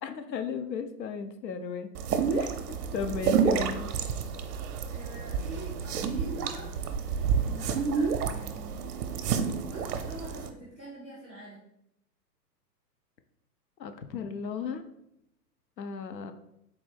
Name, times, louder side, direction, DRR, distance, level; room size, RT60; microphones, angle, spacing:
voice 1, 0.0-1.9 2.3-3.9 13.8-14.8 15.8-16.3, left 6 dB, 90° left, 8 dB, 0.5 m, -35 dB
sound 1, 1.9-10.5, right 6 dB, 65° right, 0.5 m, -29 dB
voice 2, 4.9-6.7 7.4-8.8 9.7-11.6, right 1 dB, 10° left, -10 dB, 0.3 m, -44 dB
4.0 x 2.2 x 3.2 m, 0.78 s
hypercardioid pair, 115°, 50 cm